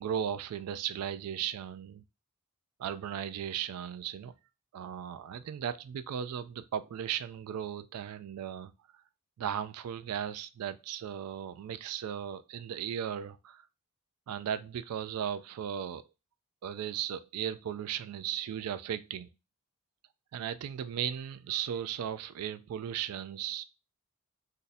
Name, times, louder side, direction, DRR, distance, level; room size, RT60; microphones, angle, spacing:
voice 1, 0.0-2.0 2.8-4.3 4.7-8.7 9.4-13.6 14.3-16.0 16.6-19.3 20.3-23.6, right 9 dB, 80° right, 0.3 m, -36 dB
2.6 x 2.6 x 3.9 m
head